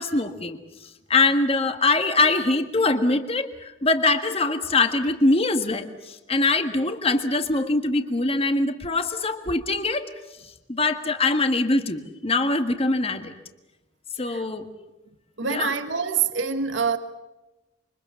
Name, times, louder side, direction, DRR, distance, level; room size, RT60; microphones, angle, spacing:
voice 1, 0.0-10.1 10.7-13.3 14.2-14.7 15.5-15.7, left 2 dB, 30° left, 1.7 m, -23 dB
voice 2, 15.4-17.0, right 6 dB, 75° right, 1.5 m, -25 dB
27.0 x 24.0 x 7.0 m
head